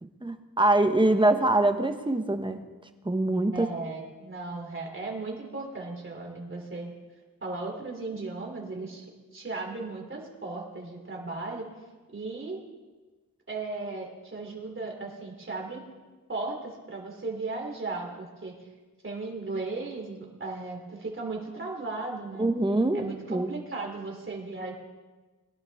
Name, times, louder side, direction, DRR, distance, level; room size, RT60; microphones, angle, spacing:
voice 1, 0.0-2.6 3.0-3.7 22.4-23.0 23.3-23.5, right 2 dB, 15° right, 7 dB, 1.0 m, -24 dB
voice 2, 3.5-6.9 7.4-9.1 9.3-11.7 12.1-12.6 13.5-15.8 16.3-18.6 19.0-22.5 22.9-24.7, right 3 dB, 35° right, 0 dB, 3.1 m, -36 dB
21.5 x 11.5 x 3.6 m, 1.3 s
wide cardioid pair, 100°, 34 cm